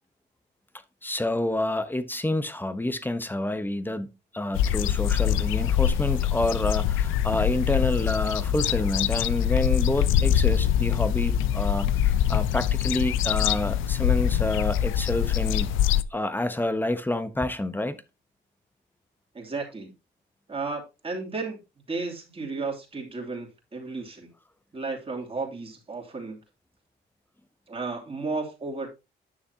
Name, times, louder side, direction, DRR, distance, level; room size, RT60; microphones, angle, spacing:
voice 1, 1.0-4.1 4.3-15.7 16.1-18.0, left 1 dB, 10° left, 1.0 m, -28 dB
sound 1, 4.5-16.0, left 10 dB, 85° left, 0.5 m, -24 dB
voice 2, 19.3-19.9 20.5-21.6 21.9-24.3 24.7-26.4 27.7-28.9, right 3 dB, 30° right, 2.9 m, -33 dB
9.9 x 6.3 x 2.8 m
cardioid pair, 90°, 20 cm